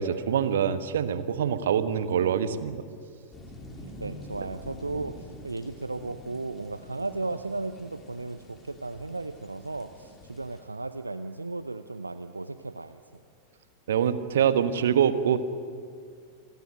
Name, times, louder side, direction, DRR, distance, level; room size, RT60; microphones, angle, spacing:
voice 1, 0.0-2.8 13.9-15.4, right 8 dB, 60° right, 12 dB, 1.4 m, -25 dB
sound 1, 3.3-10.6, left 1 dB, 20° left, 4.3 m, -46 dB
voice 2, 4.0-13.0, right 3 dB, 80° right, 11 dB, 0.7 m, -35 dB
28.0 x 19.5 x 9.1 m, 2.2 s
figure-of-eight pair, 90°, 0 cm